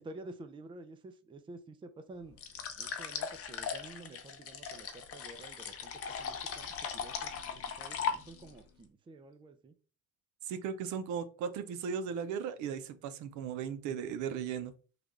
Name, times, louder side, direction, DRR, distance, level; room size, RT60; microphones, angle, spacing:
voice 1, 0.0-2.4 2.8-5.9 6.2-6.7 6.9-9.7, right 2 dB, 15° right, 0.4 m, -50 dB
sound 1, 2.4-8.6, left 7 dB, 50° left, 0.7 m, -39 dB
voice 2, 10.5-14.7, right 7 dB, 70° right, 0.5 m, -37 dB
3.3 x 2.3 x 3.7 m
cardioid pair, 95°, 31 cm